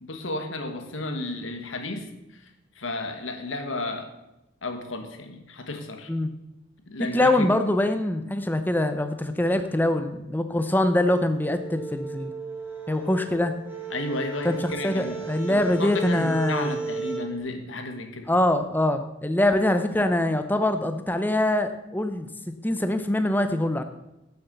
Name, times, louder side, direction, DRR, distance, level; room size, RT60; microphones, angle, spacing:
voice 1, 0.0-2.5 2.8-4.1 4.6-6.1 6.9-7.5 13.9-15.2 15.5-18.3, left 2 dB, 80° left, 6 dB, 1.6 m, -33 dB
voice 2, 7.1-12.3 12.9-13.5 14.4-14.6 14.8-16.8 18.3-22.3 22.6-23.8, left 1 dB, 10° left, 8 dB, 0.6 m, -24 dB
sound 1, 11.1-17.2, right 5 dB, 10° right, 2.2 m, -35 dB
12.0 x 6.9 x 7.0 m, 0.92 s
head